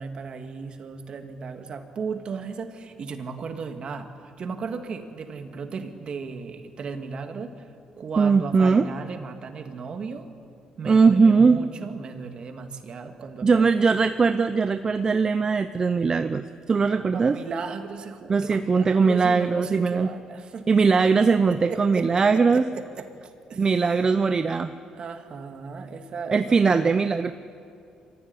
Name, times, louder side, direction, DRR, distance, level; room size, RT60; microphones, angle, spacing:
voice 1, 0.0-4.1 4.4-7.7 8.0-10.3 10.8-13.9 17.1-20.7 21.5-23.7 24.9-26.9, right 5 dB, 50° right, 6 dB, 2.2 m, -36 dB
voice 2, 8.2-8.9 10.8-11.6 13.4-17.3 18.3-20.1 20.7-22.6 23.6-24.7 26.3-27.3, right 5 dB, 35° right, 10 dB, 0.7 m, -20 dB
24.0 x 15.5 x 9.9 m, 2.5 s
cardioid pair, 90°, 2 cm